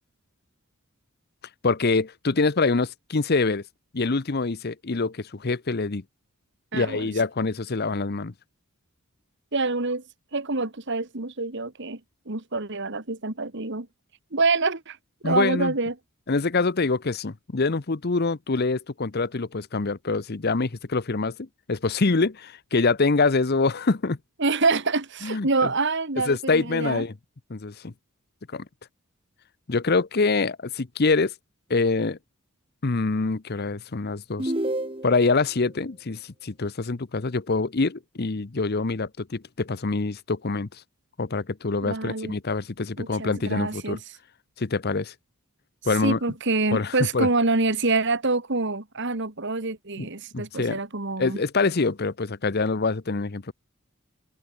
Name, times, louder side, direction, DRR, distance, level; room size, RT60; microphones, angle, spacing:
voice 1, 1.6-3.6 3.9-6.0 6.7-8.3 15.2-15.7 16.3-24.2 25.2-25.7 26.3-27.1 27.5-27.9 28.5-28.6 29.7-31.3 31.7-32.2 32.8-34.5 35.0-40.8 41.2-44.0 44.6-45.1 45.9-46.2 46.7-47.3 50.0-50.1 50.3-50.8 51.2-53.5, left 3 dB, 45° left, 0.8 m, -25 dB
voice 2, 6.7-7.1 9.5-10.0 10.3-12.0 12.3-13.9 14.3-15.0 15.2-15.9 24.4-27.0 41.8-42.4 43.0-44.0 46.0-51.4, right 3 dB, 55° right, 2.0 m, -26 dB
sound 1, 34.4-35.4, right 1 dB, 25° right, 2.3 m, -29 dB
head